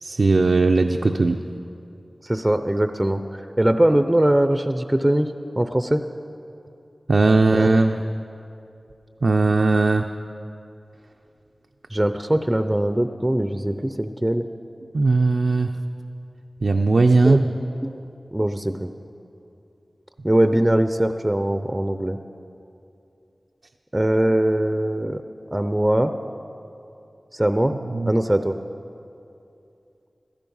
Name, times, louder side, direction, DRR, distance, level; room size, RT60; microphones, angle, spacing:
voice 1, 0.0-1.4 7.1-8.0 9.2-10.1 14.9-15.7 16.6-17.5 27.9-28.1, right 3 dB, 75° right, 4 dB, 0.5 m, -18 dB
voice 2, 2.2-5.3 5.6-6.0 7.5-7.8 11.9-14.5 17.2-17.5 17.8-18.0 18.3-18.9 20.2-22.2 23.9-25.2 25.5-26.1 27.3-27.7 28.1-28.5, right 1 dB, 15° right, 9 dB, 0.5 m, -21 dB
15.5 x 13.5 x 5.4 m, 2.7 s
wide cardioid pair, 60°, 0 cm